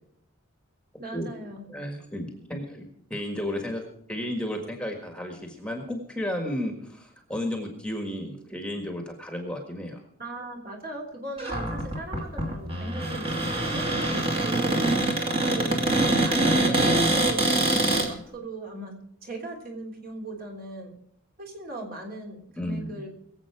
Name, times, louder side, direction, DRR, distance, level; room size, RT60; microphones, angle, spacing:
voice 1, 1.0-1.6 10.2-14.9 15.4-18.9 19.2-20.9 21.4-23.1, right 2 dB, 45° right, 0 dB, 3.3 m, -39 dB
voice 2, 1.7-10.0 11.4-11.5 22.6-23.0, left 1 dB, 5° left, 3 dB, 1.6 m, -33 dB
Cupboard open or close, 11.4-18.1, right 1 dB, 25° right, 2.2 m, -24 dB
22.0 x 8.0 x 4.8 m, 0.71 s
head